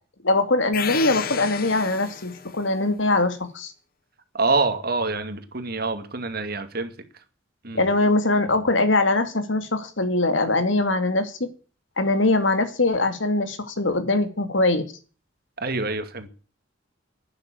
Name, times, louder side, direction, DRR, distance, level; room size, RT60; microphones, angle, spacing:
voice 1, 0.2-3.7 7.7-11.5 12.0-14.8, left 2 dB, 75° left, 2.4 m, -22 dB
sound 1, 0.7-2.6, left 8 dB, 50° left, 1.1 m, -32 dB
voice 2, 4.3-6.9 7.6-7.9 15.6-16.3, right 3 dB, 55° right, 2.2 m, -26 dB
12.0 x 9.6 x 9.0 m
head